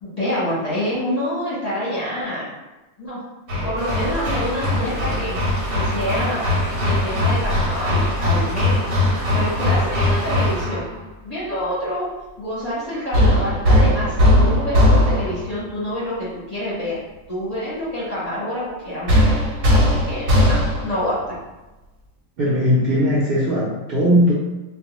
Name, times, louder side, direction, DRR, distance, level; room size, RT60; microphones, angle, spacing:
voice 1, 0.0-2.5 3.0-3.2 3.6-5.4 5.7-6.4 6.8-8.8 9.3-10.9 11.2-12.1 12.4-16.9 17.3-19.4 19.7-19.8 20.1-21.3, left 1 dB, 35° left, -10 dB, 0.7 m, -27 dB
Hammer, 3.5-10.9 13.1-15.5 19.1-21.0, left 1 dB, 85° right, 1.2 m, -19 dB
sound 1, 3.8-10.7, right 1 dB, 25° right, 0.7 m, -33 dB
voice 2, 22.4-24.3, equal, 60° right, -8 dB, 0.6 m, -18 dB
2.3 x 2.2 x 2.9 m, 1.1 s
omnidirectional pair, 1.4 m